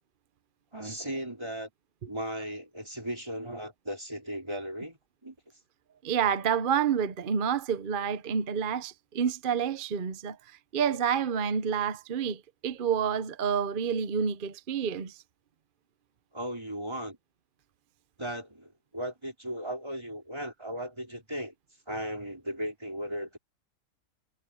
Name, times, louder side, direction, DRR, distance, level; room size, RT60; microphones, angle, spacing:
voice 1, 0.7-1.7 2.1-5.3 16.3-17.2 18.2-21.5 21.9-23.4, equal, 15° right, 4.6 m, -36 dB
voice 2, 6.0-10.4 10.7-15.1, right 7 dB, 45° right, 0.8 m, -28 dB
omnidirectional pair, 1.7 m